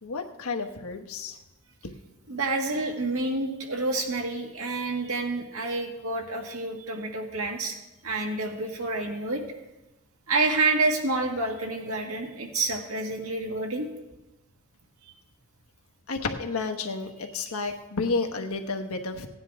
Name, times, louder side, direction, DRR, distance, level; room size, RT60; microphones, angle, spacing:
voice 1, 0.0-1.4 1.8-1.9 16.1-19.3, left 3 dB, 85° left, 4 dB, 1.1 m, -31 dB
voice 2, 2.3-7.7 8.0-9.4 10.3-13.9, right 3 dB, 85° right, 2 dB, 1.7 m, -28 dB
16.5 x 9.7 x 3.5 m, 1.0 s
head